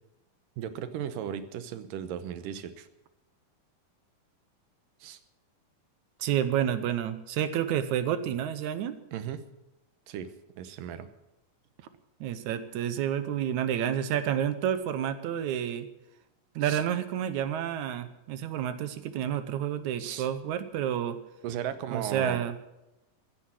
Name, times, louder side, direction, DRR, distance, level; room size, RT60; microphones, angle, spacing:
voice 1, 0.6-2.9 5.0-5.2 9.1-9.5 10.1-10.3 10.6-11.1 16.6-16.8 20.0-20.3 21.4-22.4, right 9 dB, 90° right, 11 dB, 2.7 m, -36 dB
voice 2, 6.2-9.0 12.2-15.9 16.6-21.2 21.9-22.6, right 10 dB, 75° right, 12 dB, 2.1 m, -29 dB
16.0 x 10.0 x 7.7 m, 0.92 s
omnidirectional pair, 3.7 m